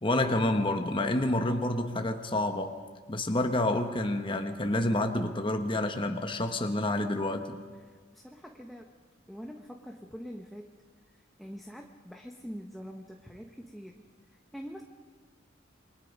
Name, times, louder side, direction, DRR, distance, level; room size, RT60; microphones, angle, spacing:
voice 1, 0.0-2.8 3.1-7.6, left 1 dB, 25° left, 5 dB, 1.2 m, -28 dB
voice 2, 7.7-8.9 9.3-10.8 11.1-14.8, equal, ahead, 2 dB, 1.1 m, -45 dB
28.0 x 23.5 x 5.4 m, 1.5 s
head